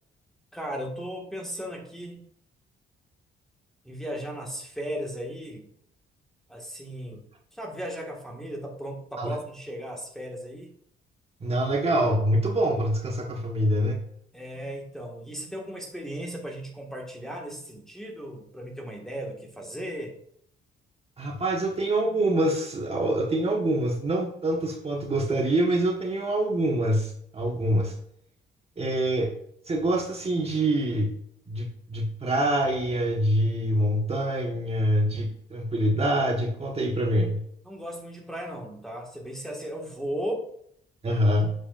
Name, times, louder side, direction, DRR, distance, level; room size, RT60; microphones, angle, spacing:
voice 1, 0.5-2.2 3.8-5.7 6.5-7.2 7.5-10.7 14.3-20.2 37.6-40.4, equal, ahead, 0 dB, 1.9 m, -36 dB
voice 2, 11.4-14.0 21.2-27.9 28.8-29.3 29.7-31.1 31.5-37.4 41.0-41.5, right 1 dB, 30° right, -1 dB, 1.4 m, -25 dB
7.9 x 7.1 x 2.6 m, 0.68 s
cardioid pair, 90°, 20 cm